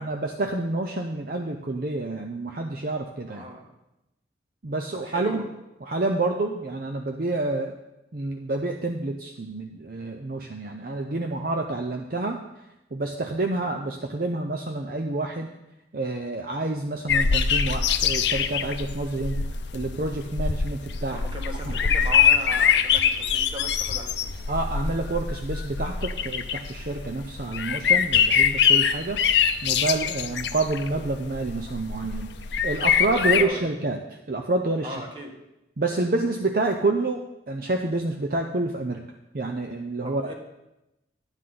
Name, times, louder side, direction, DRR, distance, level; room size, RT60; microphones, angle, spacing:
voice 1, 0.0-3.4 4.6-5.4 5.8-7.8 8.1-12.4 12.9-15.5 15.9-19.4 19.7-21.2 21.7-21.8 24.5-29.2 29.6-32.3 32.6-35.0 35.8-39.0 39.3-40.3, right 2 dB, 50° right, 4 dB, 0.6 m, -28 dB
voice 2, 3.3-3.7 5.0-5.5 21.1-24.4 33.2-33.6 34.8-35.3 40.0-40.3, equal, 25° right, 0 dB, 1.7 m, -38 dB
sound 1, 17.1-33.4, left 7 dB, 70° left, 0.6 m, -24 dB
11.5 x 9.6 x 3.9 m, 0.92 s
head